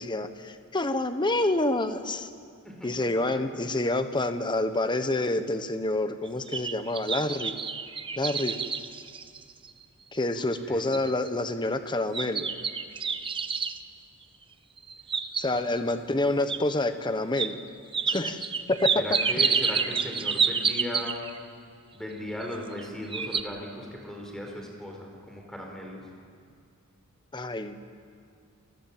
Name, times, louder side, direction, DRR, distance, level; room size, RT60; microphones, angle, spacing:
voice 1, 0.0-2.3 2.8-7.5 8.2-8.5 10.1-12.5 15.4-17.6 18.1-19.2 27.3-27.8, left 2 dB, 20° left, 9 dB, 1.2 m, -28 dB
sound 1, 6.3-9.8 10.3-10.4 10.9-11.3 12.1-13.8 14.8-15.8 16.5-16.6 17.4-17.5 17.9-21.4 22.4-22.8 23.1-23.4, right 6 dB, 25° right, 0.9 m, -29 dB
voice 2, 10.4-10.8 15.6-15.7 18.9-21.3 21.9-26.1, equal, ahead, 0 dB, 4.6 m, -37 dB
29.5 x 20.0 x 7.5 m, 2.3 s
head